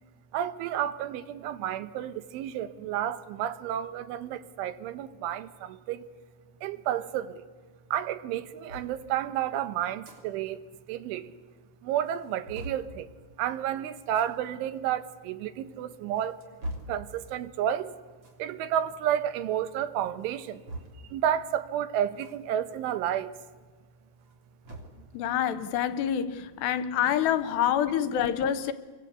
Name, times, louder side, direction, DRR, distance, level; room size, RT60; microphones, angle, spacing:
voice 1, 0.3-6.1 6.6-7.4 7.9-11.3 11.8-13.1 13.4-16.4 16.9-17.9 18.4-20.6 21.1-23.3, right 10 dB, 85° right, 3.6 m, -31 dB
sound 1, 8.7-8.9 9.8-10.2 10.6-10.7 10.9-11.0 11.6-11.7 12.0-12.9 14.0-14.3 15.1-15.2 15.9-17.0 18.2-18.4 20.2-21.2 22.2-22.4 22.7-22.8 24.1-25.0, right 1 dB, 30° right, 3.9 m, -42 dB
voice 2, 25.1-28.7, left 10 dB, 75° left, 2.7 m, -27 dB
29.5 x 24.0 x 8.3 m
omnidirectional pair, 5.4 m